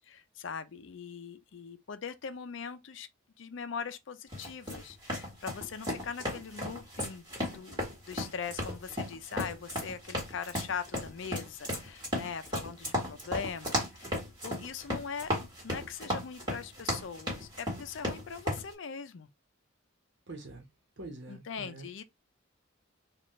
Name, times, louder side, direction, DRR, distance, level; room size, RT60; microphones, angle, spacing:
voice 1, 0.0-3.1 3.4-7.2 7.5-14.2 14.4-15.3 15.6-19.3 21.3-22.0, left 6 dB, 60° left, 0.5 m, -41 dB
sound 1, 4.3-18.6, left 1 dB, 20° right, 1.6 m, -35 dB
voice 2, 20.3-20.7 21.0-21.9, right 2 dB, 60° right, 1.1 m, -45 dB
4.0 x 2.4 x 3.1 m
head